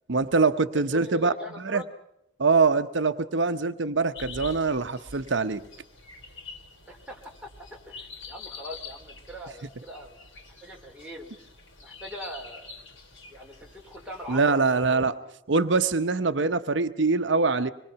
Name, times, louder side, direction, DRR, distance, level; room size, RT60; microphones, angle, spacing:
voice 1, 0.1-1.3 1.6-1.8 2.4-5.6 14.3-15.2 15.5-17.7, right 4 dB, 75° right, 10 dB, 0.8 m, -23 dB
voice 2, 0.7-1.9 6.9-10.2 10.6-11.3 11.8-12.7 13.3-15.2, equal, 5° right, -1 dB, 3.9 m, -41 dB
sound 1, 4.1-14.5, left 4 dB, 90° left, 4.3 m, -46 dB
25.5 x 21.5 x 5.8 m, 0.82 s
head